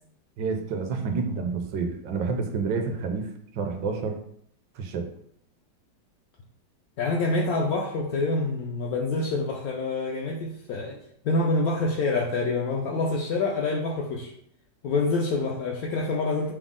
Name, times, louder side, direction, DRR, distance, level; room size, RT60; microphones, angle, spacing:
voice 1, 0.4-3.3 3.5-4.2 4.8-5.1, right 4 dB, 75° right, 4 dB, 1.3 m, -29 dB
voice 2, 7.0-11.0 11.2-14.3 14.8-16.5, left 3 dB, 70° left, 0 dB, 0.9 m, -26 dB
6.0 x 2.0 x 3.6 m, 0.68 s
omnidirectional pair, 2.0 m